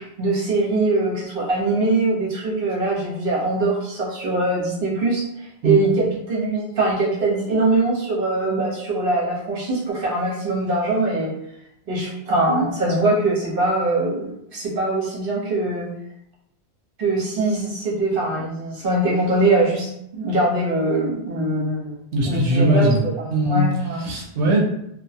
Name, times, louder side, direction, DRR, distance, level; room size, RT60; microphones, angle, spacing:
voice 1, 0.0-11.3 11.9-15.9 17.0-24.0, right 2 dB, 60° right, -4 dB, 1.0 m, -22 dB
voice 2, 22.1-23.0 23.3-23.7 24.0-24.6, right 1 dB, 90° right, -2 dB, 0.9 m, -19 dB
2.3 x 2.2 x 2.7 m, 0.77 s
omnidirectional pair, 1.1 m